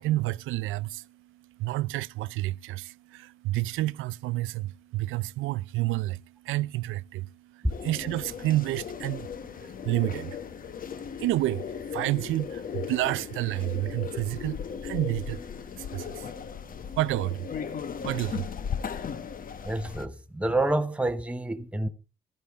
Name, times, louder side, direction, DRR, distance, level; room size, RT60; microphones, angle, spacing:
voice 1, 0.0-18.8, right 17 dB, 85° right, 0.5 m, -30 dB
sound 1, 7.7-20.0, left 7 dB, 45° left, 1.0 m, -37 dB
voice 2, 19.6-21.9, right 2 dB, 5° right, 0.9 m, -28 dB
14.5 x 12.0 x 3.5 m
cardioid pair, 90°, 20 cm